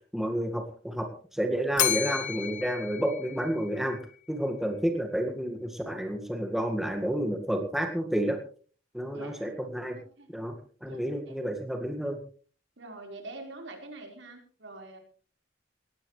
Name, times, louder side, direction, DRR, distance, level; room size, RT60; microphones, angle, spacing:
voice 1, 0.1-1.1 1.3-4.0 4.3-8.4 8.9-10.0 10.3-10.5 10.8-12.2, equal, ahead, 3 dB, 1.8 m, -30 dB
Bell, 1.8-4.0, left 10 dB, 45° left, 1.4 m, -31 dB
voice 2, 9.1-9.5 10.0-10.3 10.8-11.4 12.8-15.0, right 2 dB, 70° right, 3 dB, 4.7 m, -45 dB
18.5 x 17.0 x 3.3 m, 0.42 s
head